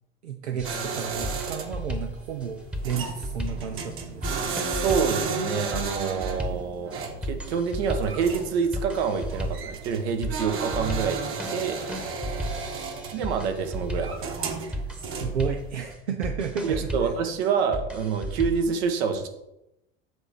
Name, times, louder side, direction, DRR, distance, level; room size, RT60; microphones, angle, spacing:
voice 1, 0.2-4.4 14.9-17.1, right 7 dB, 90° right, 4 dB, 0.7 m, -33 dB
sound 1, 0.6-18.7, equal, 5° right, 1.1 m, -35 dB
sound 2, 0.6-15.9, right 5 dB, 40° right, 1.3 m, -34 dB
voice 2, 4.8-6.9 7.2-11.8 13.1-14.6 16.6-19.3, right 6 dB, 70° right, 6 dB, 1.2 m, -27 dB
7.9 x 3.4 x 5.8 m, 0.89 s
hypercardioid pair, 80°, 33 cm